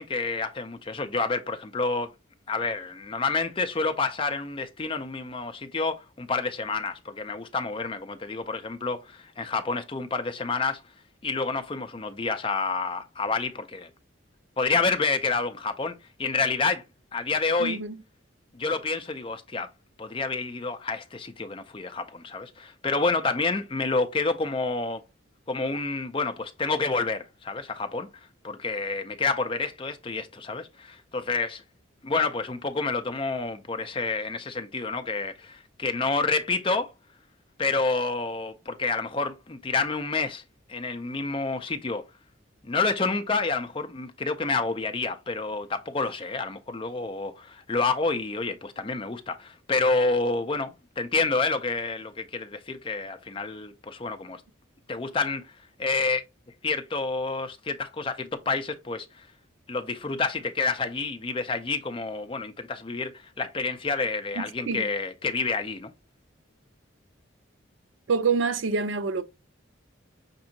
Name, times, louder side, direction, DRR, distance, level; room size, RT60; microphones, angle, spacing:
voice 1, 0.0-2.1 2.5-10.8 11.2-13.9 14.6-16.8 17.1-17.8 18.5-19.7 20.0-25.0 25.5-28.1 28.4-31.6 32.0-36.9 37.6-40.4 40.7-42.0 42.6-54.4 54.9-55.5 55.8-56.2 56.6-59.3 59.7-65.9, left 3 dB, 25° left, 0.5 m, -28 dB
voice 2, 17.6-18.0 64.4-64.9 68.1-69.2, right 5 dB, 70° right, 0.4 m, -26 dB
5.9 x 2.7 x 2.7 m
head